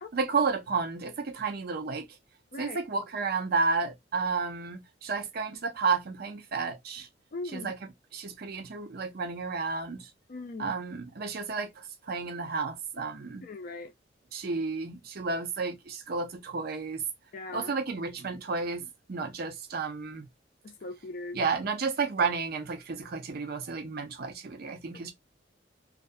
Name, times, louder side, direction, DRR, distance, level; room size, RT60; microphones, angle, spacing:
voice 1, 0.1-2.1 2.6-7.1 7.4-10.1 10.6-13.5 14.3-17.0 17.5-20.3 21.3-25.1, right 4 dB, 55° right, 0.6 m, -32 dB
voice 2, 7.3-7.7 10.3-10.8 13.4-13.9 14.4-14.5 17.3-17.7 20.6-21.4, left 3 dB, 50° left, 0.4 m, -39 dB
2.4 x 2.2 x 2.5 m
head